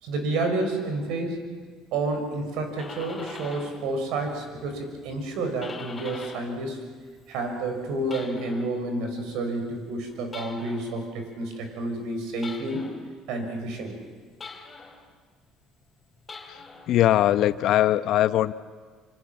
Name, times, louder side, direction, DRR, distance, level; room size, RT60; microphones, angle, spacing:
voice 1, 0.0-1.6 1.9-6.8 7.3-12.9 13.3-14.0, right 2 dB, 75° right, 5 dB, 6.3 m, -30 dB
sound 1, 2.5-3.9 4.2-6.6 6.9-8.8 10.3-11.0 12.4-13.1 14.4-15.1 16.2-16.9, left 4 dB, 25° left, 4.3 m, -43 dB
voice 2, 16.5-18.5, left 13 dB, 65° left, 13 dB, 1.0 m, -21 dB
26.0 x 26.0 x 7.4 m, 1.5 s
supercardioid pair, 95°, 0 cm